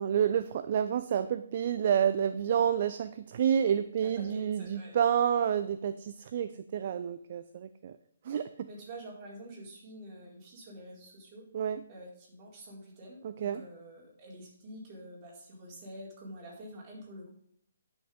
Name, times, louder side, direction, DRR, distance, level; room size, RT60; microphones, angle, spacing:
voice 1, 0.0-8.0 8.2-8.7 11.5-11.8 13.2-13.6, right 8 dB, 50° right, 11 dB, 0.5 m, -29 dB
voice 2, 4.0-4.9 8.7-11.5 11.9-17.3, right 1 dB, 30° right, -4 dB, 4.5 m, -47 dB
10.5 x 6.5 x 5.3 m, 0.65 s
figure-of-eight pair, 140°, 0 cm